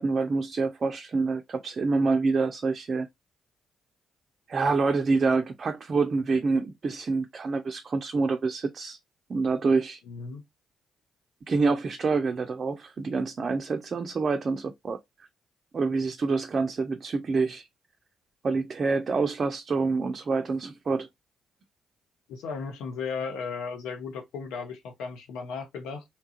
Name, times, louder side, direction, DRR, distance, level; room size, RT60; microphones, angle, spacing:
voice 1, 0.0-3.1 4.5-9.0 9.3-10.0 11.5-15.0 15.7-17.7 18.4-21.1, right 4 dB, 45° right, 0.4 m, -27 dB
voice 2, 10.1-10.4 22.3-26.0, left 5 dB, 75° left, 0.6 m, -35 dB
2.8 x 2.3 x 2.8 m
hypercardioid pair, 45°, 0 cm